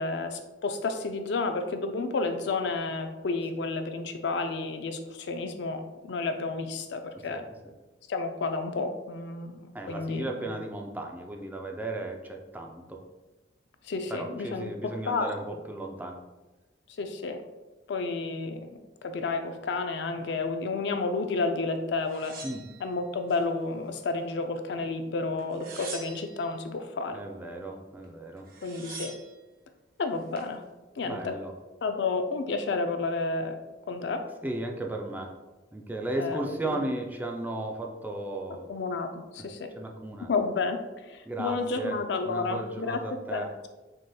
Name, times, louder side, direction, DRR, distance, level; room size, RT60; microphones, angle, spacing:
voice 1, 0.0-7.4 8.1-10.5 13.8-15.6 17.0-17.4 17.9-18.7 19.0-22.4 22.8-27.2 28.6-29.1 30.0-30.6 31.0-31.3 31.8-33.6 33.9-34.2 36.2-36.4 36.7-36.8 38.7-39.7 40.2-43.0 43.3-43.7, left 3 dB, 65° left, 6 dB, 0.4 m, -31 dB
voice 2, 9.7-13.0 14.1-16.2 22.4-22.7 27.1-28.5 31.0-31.5 34.4-35.3 35.7-38.7 39.4-39.5 39.8-40.3 41.3-42.0 42.2-43.5, right 1 dB, 10° right, 1 dB, 0.4 m, -35 dB
sound 1, 22.1-23.4 23.9-24.7 25.4-26.5 28.0-28.1 28.4-29.3 30.0-30.5, right 4 dB, 55° right, 0.7 m, -44 dB
6.2 x 2.9 x 2.2 m, 1.1 s
head